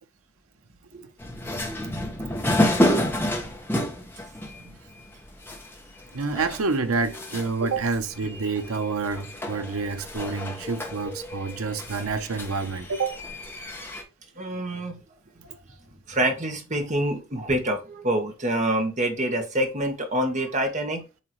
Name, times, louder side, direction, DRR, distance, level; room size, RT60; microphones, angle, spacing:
sound 1, 1.2-14.0, left 1 dB, 10° left, 1.2 m, -30 dB
voice 1, 6.1-13.2, right 4 dB, 90° right, 0.8 m, -28 dB
voice 2, 14.4-15.0 16.1-21.0, right 1 dB, 35° right, 1.4 m, -26 dB
8.4 x 3.8 x 3.1 m
head